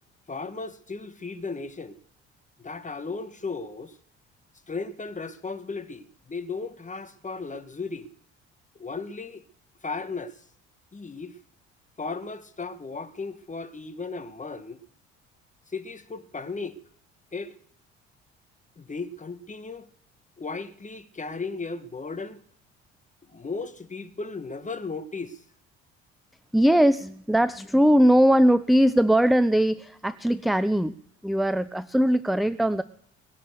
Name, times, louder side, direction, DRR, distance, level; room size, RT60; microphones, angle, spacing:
voice 1, 0.3-2.0 2.6-4.0 4.7-8.1 8.8-9.5 9.8-10.5 10.9-11.4 12.0-14.8 15.7-16.8 17.3-17.5 18.8-19.9 20.4-22.4 23.3-25.4, left 4 dB, 20° left, 1.7 m, -35 dB
voice 2, 26.5-31.0 31.2-32.8, equal, ahead, 0.7 m, -20 dB
22.0 x 7.3 x 6.7 m
hypercardioid pair, 55°, 33 cm